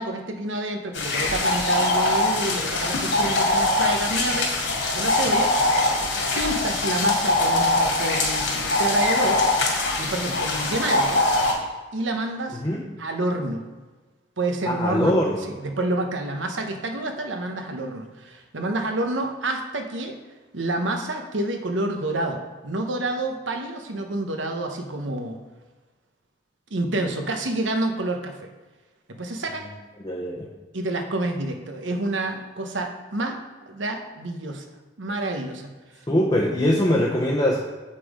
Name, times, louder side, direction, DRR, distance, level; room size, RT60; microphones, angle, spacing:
voice 1, 0.0-4.6 4.9-5.5 6.3-9.5 10.0-11.2 11.9-12.6 13.0-13.6 14.4-15.1 15.6-20.2 20.5-25.4 26.7-28.5 29.1-29.7 30.7-33.4 33.7-34.6 35.0-35.7, right 2 dB, 80° right, 4 dB, 1.1 m, -28 dB
sound 1, 0.9-11.5, left 2 dB, 75° left, 2.5 m, -22 dB
voice 2, 14.6-15.5 30.0-30.5 36.1-37.6, left 1 dB, 20° left, -4 dB, 0.8 m, -22 dB
8.3 x 5.8 x 4.9 m, 1.3 s
head